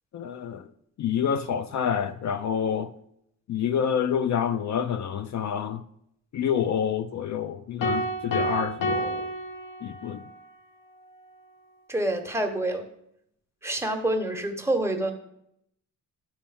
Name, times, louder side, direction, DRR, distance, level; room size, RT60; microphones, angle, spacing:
voice 1, 0.1-0.7 1.0-2.9 3.5-5.8 6.3-9.3 9.8-10.2, left 8 dB, 55° left, 0.5 m, -28 dB
sound 1, 7.8-10.3, equal, 80° left, 1.3 m, -29 dB
voice 2, 11.9-12.9 13.6-15.1, right 1 dB, 10° right, 1.0 m, -27 dB
11.5 x 4.2 x 7.0 m
wide cardioid pair, 165°, 33 cm